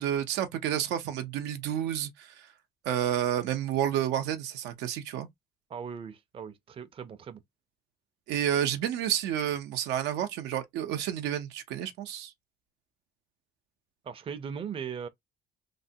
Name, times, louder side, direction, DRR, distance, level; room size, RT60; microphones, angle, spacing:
voice 1, 0.0-2.5 2.8-5.3 8.3-12.3, right 10 dB, 85° right, 0.6 m, -30 dB
voice 2, 5.7-7.4 14.0-15.1, right 7 dB, 35° right, 0.5 m, -39 dB
3.3 x 2.2 x 2.6 m
cardioid pair, 110°, 17 cm